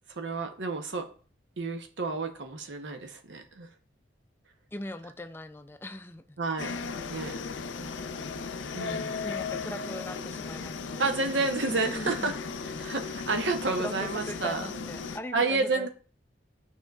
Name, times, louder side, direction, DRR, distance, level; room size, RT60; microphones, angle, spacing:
voice 1, 0.1-1.1 1.6-3.7 6.4-6.8 7.1-7.4 8.7-9.2 11.0-12.4 12.6-14.7 15.3-15.9, right 3 dB, 75° right, 0.8 m, -30 dB
voice 2, 4.7-6.4 9.2-11.0 11.8-12.3 13.8-15.9, left 1 dB, 10° left, 0.3 m, -40 dB
sound 1, 6.6-15.2, left 4 dB, 85° left, 0.5 m, -36 dB
9.0 x 5.4 x 2.3 m
head